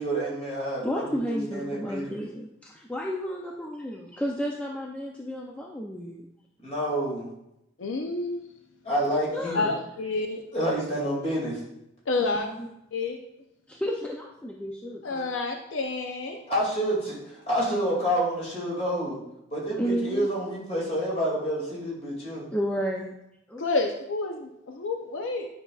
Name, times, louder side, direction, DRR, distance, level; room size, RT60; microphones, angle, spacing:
voice 1, 0.0-2.1 6.6-7.3 8.8-9.7 10.5-11.6 16.5-19.2 19.5-22.4, right 1 dB, 30° left, -5 dB, 2.2 m, -28 dB
voice 2, 0.8-6.2 9.3-9.8 12.2-12.7 13.7-15.3 19.8-20.3 22.5-23.1 23.5-23.9, equal, 5° left, -1 dB, 0.4 m, -32 dB
voice 3, 7.8-8.4 9.5-10.4 12.1-12.5 12.9-13.2 15.0-16.4 23.6-25.5, left 3 dB, 70° left, 4 dB, 0.5 m, -29 dB
9.4 x 5.5 x 2.3 m, 0.84 s
head